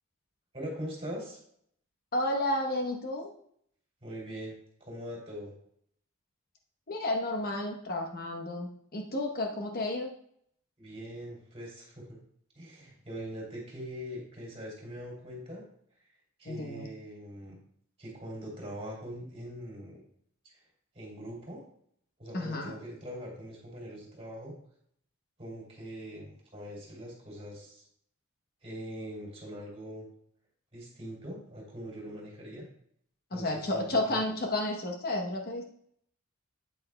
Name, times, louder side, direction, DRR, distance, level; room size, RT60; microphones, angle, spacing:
voice 1, 0.5-1.4 4.0-4.5 4.8-5.5 10.8-12.2 12.5-15.6 16.4-17.6 18.0-20.0 20.4-20.5 20.9-21.6 22.2-24.6 25.4-27.8 28.6-30.0 30.7-32.7 33.3-33.8 34.1-34.2, equal, 25° right, -2 dB, 2.9 m, -42 dB
voice 2, 2.1-3.3 6.9-10.1 16.4-16.9 22.3-22.8 33.3-35.6, left 1 dB, 45° left, 2 dB, 0.9 m, -32 dB
8.8 x 8.2 x 2.2 m, 0.66 s
head